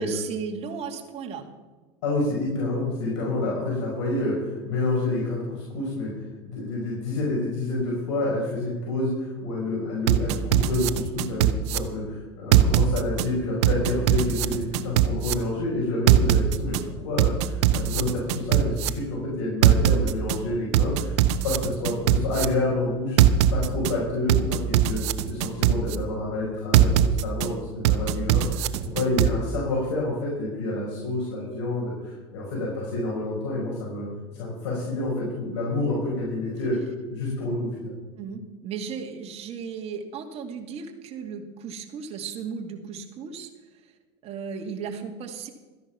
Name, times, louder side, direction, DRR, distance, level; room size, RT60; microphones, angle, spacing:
voice 1, 0.0-1.5 38.2-43.5 44.2-45.5, right 6 dB, 45° right, 3 dB, 2.3 m, -35 dB
voice 2, 2.0-6.1 6.4-21.2 21.4-25.0 25.3-34.1 34.3-36.8 37.1-38.0, left 2 dB, 80° left, -4 dB, 5.4 m, -28 dB
sound 1, 10.1-11.8 12.5-13.3 13.6-15.3 16.1-16.8 17.2-18.9 19.6-20.4 20.7-22.5 23.2-23.9 24.3-26.0 26.7-27.5 27.8-29.3, right 12 dB, 75° right, 0.9 m, -20 dB
14.0 x 10.5 x 5.8 m, 1.3 s
supercardioid pair, 105°, 15 cm